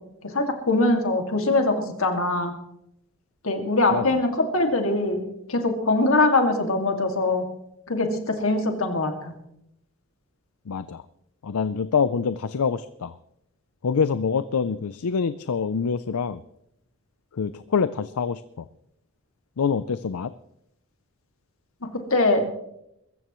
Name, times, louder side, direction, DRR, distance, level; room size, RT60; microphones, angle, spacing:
voice 1, 0.3-2.5 3.4-5.2 5.5-7.4 7.9-9.3 21.9-22.5, left 2 dB, 70° left, 4 dB, 2.2 m, -22 dB
voice 2, 10.7-11.0 11.4-13.1 13.8-16.4 17.3-18.7 19.6-20.3, left 6 dB, 85° left, 14 dB, 0.5 m, -25 dB
22.5 x 14.5 x 3.1 m, 0.79 s
head